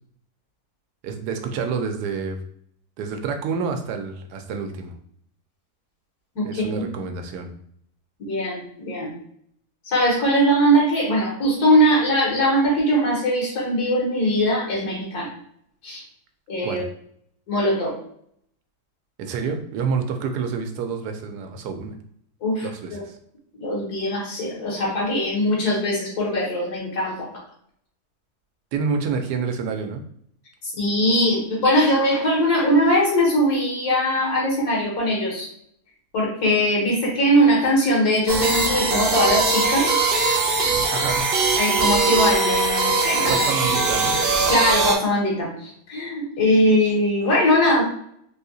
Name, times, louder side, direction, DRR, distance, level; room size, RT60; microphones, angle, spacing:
voice 1, 1.0-2.4 3.0-4.9 6.4-7.5 16.6-16.8 19.2-21.9 22.6-23.2 28.7-30.0 40.9-41.2 43.2-44.1, right 5 dB, 90° right, 5 dB, 1.2 m, -28 dB
voice 2, 6.4-6.8 8.2-9.1 9.8-15.3 15.8-16.0 16.5-16.8 17.5-17.9 22.4-23.0 23.6-27.3 30.6-35.5 36.1-40.0 41.6-43.3 44.5-47.8, equal, 75° left, -4 dB, 1.8 m, -21 dB
sound 1, 38.3-45.0, right 3 dB, 60° right, 0.6 m, -21 dB
3.6 x 2.7 x 2.6 m, 0.67 s
omnidirectional pair, 1.7 m